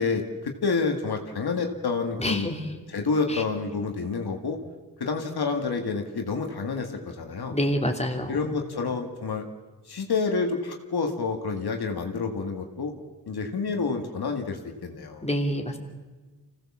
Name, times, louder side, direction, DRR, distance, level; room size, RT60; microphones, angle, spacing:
voice 1, 0.0-2.5 2.9-4.6 5.0-7.6 8.3-9.4 9.9-12.9 13.3-15.3, left 4 dB, 85° left, 3 dB, 2.0 m, -28 dB
voice 2, 2.2-2.6 3.3-3.4 7.5-8.3 15.2-15.8, equal, 15° left, 2 dB, 3.3 m, -27 dB
25.5 x 17.0 x 7.4 m, 1.3 s
cardioid pair, 45°, 38 cm